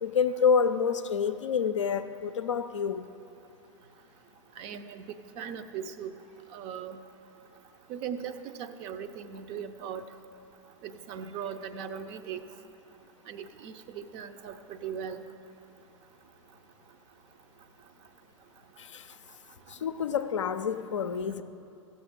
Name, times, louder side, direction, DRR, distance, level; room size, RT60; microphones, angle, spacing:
voice 1, 0.0-3.0 18.8-19.0 19.7-21.4, left 6 dB, 70° left, 10 dB, 0.5 m, -28 dB
voice 2, 4.6-5.1 5.4-6.1 6.5-7.0 7.9-10.1 10.8-12.4 13.3-15.2, right 7 dB, 35° right, 9 dB, 0.5 m, -39 dB
15.5 x 7.2 x 3.7 m, 2.8 s
figure-of-eight pair, 95°, 16 cm